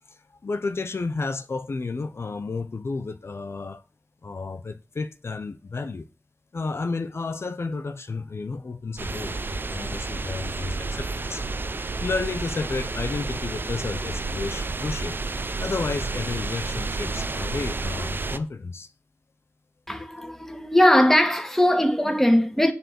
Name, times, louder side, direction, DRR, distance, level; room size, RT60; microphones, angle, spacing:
voice 1, 0.1-3.8 4.2-6.1 6.5-11.4 12.0-15.2 15.6-18.9, left 3 dB, 70° left, 1.0 m, -31 dB
sound 1, 9.0-18.4, right 3 dB, 50° right, 0.8 m, -30 dB
voice 2, 19.9-22.7, left 1 dB, 5° left, 2.2 m, -20 dB
9.8 x 4.7 x 7.8 m
cardioid pair, 50°, 5 cm